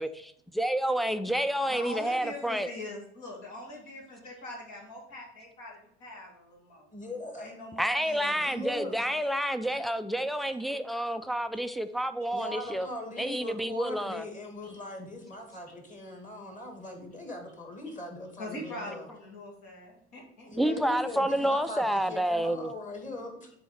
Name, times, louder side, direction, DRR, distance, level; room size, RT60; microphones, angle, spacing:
voice 1, 0.6-2.7 7.8-12.9 13.2-14.3 20.5-22.7, right 1 dB, ahead, 11 dB, 0.4 m, -29 dB
voice 2, 1.7-8.5 9.0-9.1 9.7-9.8 10.1-10.2 14.6-14.8 18.4-20.7 21.0-21.1, left 1 dB, 55° left, -1 dB, 2.0 m, -43 dB
voice 3, 6.9-7.6 8.3-9.0 12.3-19.1 20.5-23.5, left 2 dB, 20° left, 3 dB, 2.0 m, -40 dB
6.9 x 4.2 x 5.1 m, 0.73 s
figure-of-eight pair, 60°, 34 cm